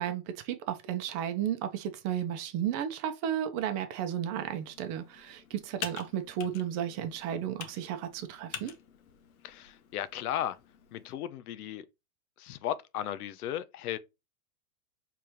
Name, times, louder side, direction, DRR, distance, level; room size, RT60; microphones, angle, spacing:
voice 1, 0.0-8.7, right 10 dB, 35° right, 0.9 m, -33 dB
Computer keyboard, 4.4-11.1, left 8 dB, 70° left, 1.2 m, -47 dB
voice 2, 9.4-10.6 10.9-11.9 12.4-14.0, left 11 dB, 85° left, 0.8 m, -35 dB
4.7 x 3.6 x 2.9 m
supercardioid pair, 140°, 44 cm